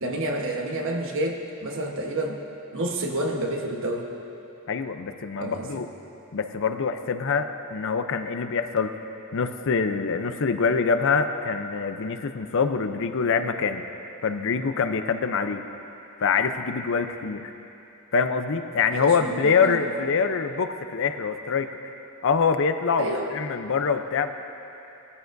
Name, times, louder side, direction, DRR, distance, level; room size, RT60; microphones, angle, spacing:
voice 1, 0.0-2.4 2.7-4.1 5.4-5.8 18.9-19.8 23.0-23.3, right 1 dB, 60° right, 1 dB, 1.2 m, -29 dB
voice 2, 4.7-5.9 6.3-8.9 9.3-13.8 14.2-15.6 16.2-17.4 18.1-21.7 22.2-24.3, left 5 dB, 60° left, 8 dB, 0.6 m, -25 dB
18.5 x 14.0 x 2.6 m, 2.9 s
head